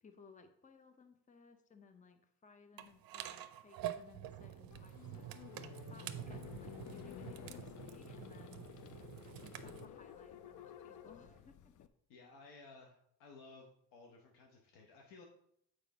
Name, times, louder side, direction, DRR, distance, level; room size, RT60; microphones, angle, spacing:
voice 1, 0.0-5.6 5.9-8.7 9.3-11.9, left 5 dB, 20° left, 8 dB, 0.7 m, -61 dB
sound 1, 2.8-9.9, right 12 dB, 65° right, 0.6 m, -47 dB
sound 2, 4.7-11.9, left 11 dB, 50° left, 0.5 m, -52 dB
sound 3, 5.1-11.4, right 2 dB, 10° right, 1.5 m, -65 dB
voice 2, 12.1-15.2, left 3 dB, 90° left, 1 dB, 0.9 m, -57 dB
6.7 x 4.7 x 4.0 m, 0.72 s
cardioid pair, 90°, 39 cm